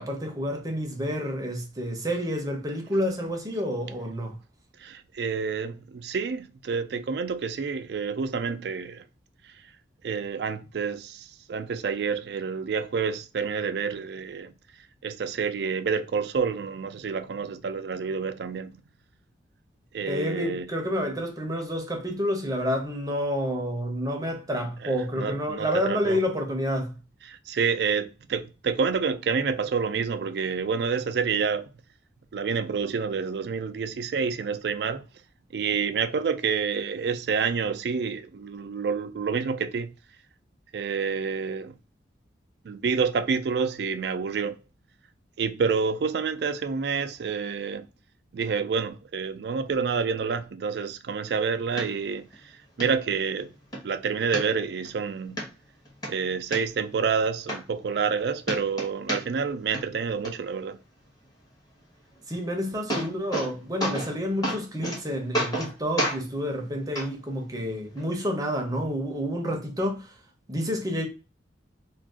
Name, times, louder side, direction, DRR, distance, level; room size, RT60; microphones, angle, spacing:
voice 1, 0.0-4.4 20.1-27.0 62.3-70.1 70.5-71.1, equal, 20° right, 0.7 m, -29 dB
voice 2, 4.8-9.0 9.4-9.5 10.0-14.5 15.0-18.8 19.9-20.7 24.8-26.2 27.3-31.7 32.3-35.1 35.5-39.9 40.7-41.8 42.6-44.6 45.4-47.9 48.3-52.5 52.8-53.5 53.8-55.5 56.1-60.8, right 5 dB, 60° right, 0.4 m, -28 dB
sound 1, 51.8-51.9 52.3-52.4 52.8-52.9 53.4-53.8 54.3-54.9 55.4-55.5 55.8-56.6 57.1-57.2 57.5-58.2 58.4-59.5 59.7-60.3 62.3-62.4 62.7-63.5 63.8-64.1 64.4-65.0 65.3-65.7 66.0-66.2 66.9-67.1 68.0-68.1, right 1 dB, 20° left, 1.0 m, -30 dB
2.5 x 2.3 x 3.5 m
head